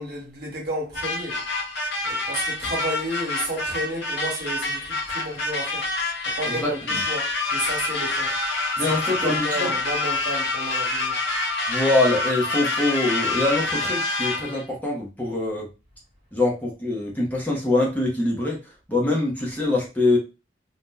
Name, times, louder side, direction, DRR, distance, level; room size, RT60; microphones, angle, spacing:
voice 1, 0.0-1.4 2.0-5.9 6.2-8.4 8.7-11.2, equal, 55° right, 1.2 m, -32 dB
sound 1, 0.9-14.6, left 2 dB, 60° left, 0.8 m, -27 dB
voice 2, 6.5-7.0 8.8-9.7 11.7-15.7 16.3-18.6 18.9-20.2, left 2 dB, 10° left, 0.7 m, -24 dB
2.6 x 2.1 x 3.6 m
head